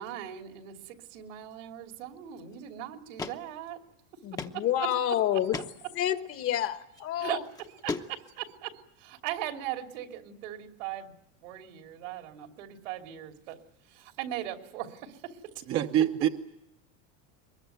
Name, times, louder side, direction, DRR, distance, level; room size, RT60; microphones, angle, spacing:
voice 1, 0.0-3.8 4.1-4.9 5.3-5.4 7.2-11.1 11.4-13.6 13.8-15.5, right 12 dB, 75° right, 4 dB, 3.2 m, -39 dB
sound 1, 2.5-2.6 3.2-3.4 3.7-3.8 4.4-4.6 5.0-5.1 5.5-5.7 6.8-7.0 7.6-8.4, left 4 dB, 10° left, 0.9 m, -35 dB
voice 2, 4.2-5.6 5.9-7.4, left 11 dB, 35° left, 10 dB, 1.3 m, -29 dB
voice 3, 15.7-16.3, right 11 dB, 35° right, 5 dB, 0.9 m, -25 dB
23.0 x 21.5 x 9.2 m, 0.87 s
supercardioid pair, 150°, 38 cm